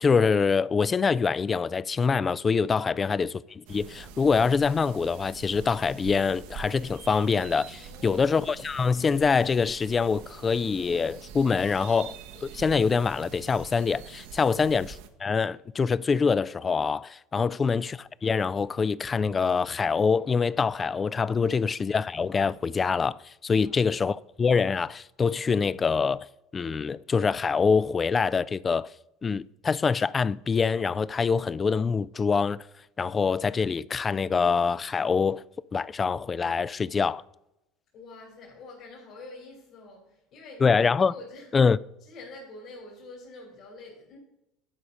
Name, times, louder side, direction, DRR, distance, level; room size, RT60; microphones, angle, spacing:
voice 1, 0.0-12.2 12.4-14.9 15.2-26.3 26.5-28.9 29.2-32.6 33.0-35.4 35.7-37.2 40.6-41.1 41.5-41.8, left 5 dB, 30° left, 0.3 m, -25 dB
sound 1, 3.7-15.1, right 7 dB, 80° right, 0.9 m, -45 dB
voice 2, 7.8-8.3 14.4-14.6 17.3-17.6 21.5-21.6 23.5-23.9 37.9-40.7 41.1-41.5 42.0-44.2, left 2 dB, 55° left, 3.2 m, -47 dB
11.0 x 4.9 x 5.3 m
supercardioid pair, 90°, 0 cm